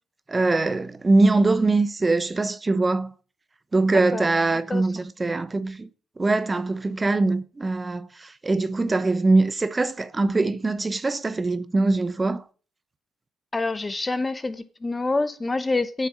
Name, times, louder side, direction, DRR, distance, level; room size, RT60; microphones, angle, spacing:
voice 1, 0.3-3.1 3.7-5.9 6.2-12.4, right 3 dB, 25° right, 0.9 m, -22 dB
voice 2, 13.5-16.1, left 3 dB, 20° left, 0.9 m, -26 dB
8.8 x 6.8 x 7.3 m
cardioid pair, 90°, 0 cm